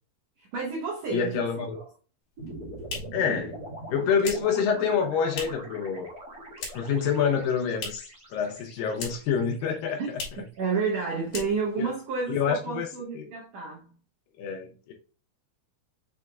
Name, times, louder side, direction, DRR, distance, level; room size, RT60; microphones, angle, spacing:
voice 1, 0.4-1.4 1.7-1.9 10.0-10.1 10.4-13.9, right 5 dB, 85° right, 1.5 m, -30 dB
voice 2, 1.1-1.8 3.1-3.6 3.9-6.1 6.7-10.2 11.8-11.9 12.3-13.3 14.4-14.9, left 6 dB, 80° left, 2.1 m, -27 dB
sound 1, 2.3-5.8 6.0-7.0 7.3-8.2 8.5-9.4 9.7-9.8 10.1-10.5 10.9-11.0 11.3-11.9, left 4 dB, 60° left, 2.6 m, -39 dB
sound 2, 2.4-10.7, right 1 dB, 40° right, 1.6 m, -43 dB
6.2 x 3.8 x 2.2 m
omnidirectional pair, 4.5 m